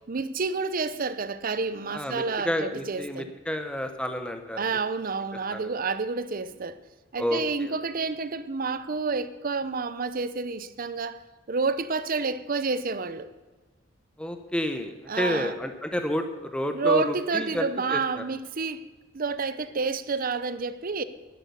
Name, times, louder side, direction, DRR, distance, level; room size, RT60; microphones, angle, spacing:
voice 1, 0.1-3.3 4.6-6.8 7.1-11.2 11.5-13.3 15.1-15.5 16.7-18.8 19.1-21.0, right 4 dB, 45° right, 0.7 m, -29 dB
voice 2, 1.9-4.6 5.5-5.6 7.2-7.7 14.2-18.2, left 1 dB, 5° left, 0.8 m, -30 dB
11.0 x 10.5 x 6.9 m
head